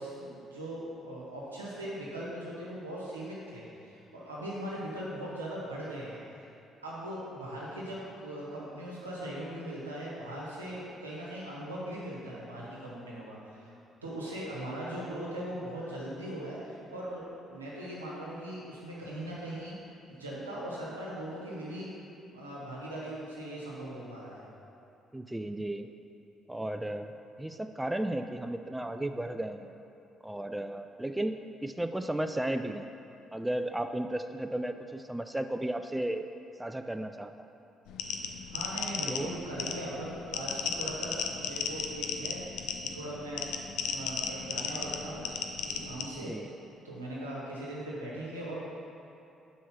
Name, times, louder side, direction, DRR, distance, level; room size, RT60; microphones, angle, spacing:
voice 1, 0.0-6.2 6.8-13.7 14.0-19.9 20.1-21.9 22.3-24.4 38.5-43.5 43.9-45.4 45.6-46.3 46.8-48.7, right 1 dB, 85° right, -6 dB, 1.1 m, -40 dB
voice 2, 25.1-25.9 26.5-27.1 27.4-29.8 30.2-32.9 33.3-36.3 36.6-37.3 39.1-39.3 46.2-46.5, right 1 dB, 10° right, 7 dB, 0.3 m, -34 dB
sound 1, 37.9-46.1, left 7 dB, 65° left, 0.4 m, -35 dB
5.4 x 4.6 x 5.9 m, 2.7 s
figure-of-eight pair, 45°, 0 cm